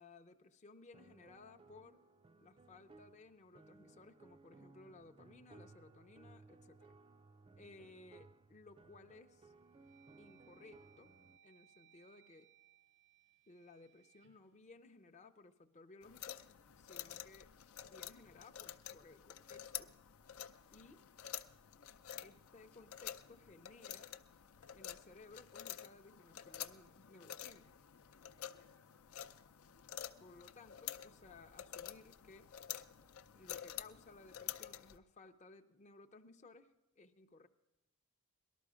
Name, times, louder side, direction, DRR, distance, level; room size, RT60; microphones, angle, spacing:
voice 1, 0.0-2.0 2.4-6.9 7.6-9.5 10.2-11.2 11.4-12.5 13.5-16.4 16.8-17.5 17.8-19.9 20.7-21.1 22.2-24.1 24.7-27.7 30.2-32.5 33.3-37.5, left 3 dB, 35° left, 5 dB, 0.5 m, -60 dB
sound 1, 0.9-11.4, right 3 dB, 25° right, 0.4 m, -62 dB
sound 2, 8.5-9.0 9.5-15.6, right 9 dB, 55° right, 0.7 m, -69 dB
sound 3, 16.0-35.0, left 11 dB, 80° left, 0.6 m, -49 dB
18.5 x 12.5 x 5.0 m, 1.0 s
head